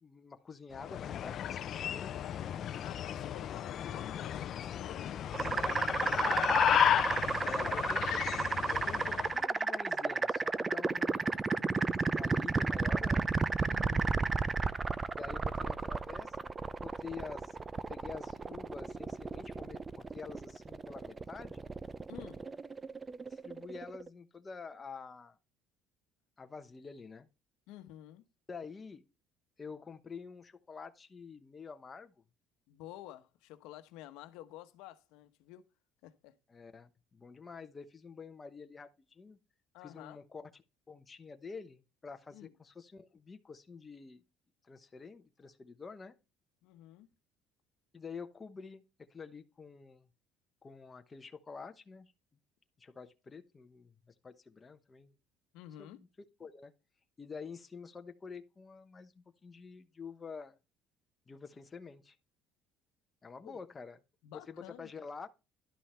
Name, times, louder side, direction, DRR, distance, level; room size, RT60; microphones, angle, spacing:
voice 1, 0.0-2.1 6.0-6.5 7.5-8.2 8.7-13.3 15.1-16.5 16.8-17.6 17.9-21.6 23.3-25.4 26.4-27.3 28.5-29.0 29.6-32.1 36.5-39.4 39.8-44.2 44.6-46.1 47.9-48.8 49.1-50.1 50.6-52.1 52.8-53.9 54.2-55.1 55.8-56.1 56.4-56.7 57.2-60.6 61.3-62.1 63.2-64.0 64.3-65.3, left 5 dB, 20° left, 1.0 m, -48 dB
sound 1, 0.7-9.4, left 10 dB, 50° left, 0.5 m, -33 dB
voice 2, 2.8-5.1 6.3-6.6 7.4-7.9 13.6-14.2 22.1-22.5 27.7-28.3 32.7-35.6 36.0-36.3 39.7-40.2 42.3-42.5 46.6-47.1 55.5-56.0 63.4-63.6 64.2-64.9, left 13 dB, 80° left, 1.0 m, -50 dB
sound 2, 5.3-24.1, right 4 dB, 20° right, 0.5 m, -33 dB
11.5 x 5.5 x 4.3 m
cardioid pair, 120°, 0 cm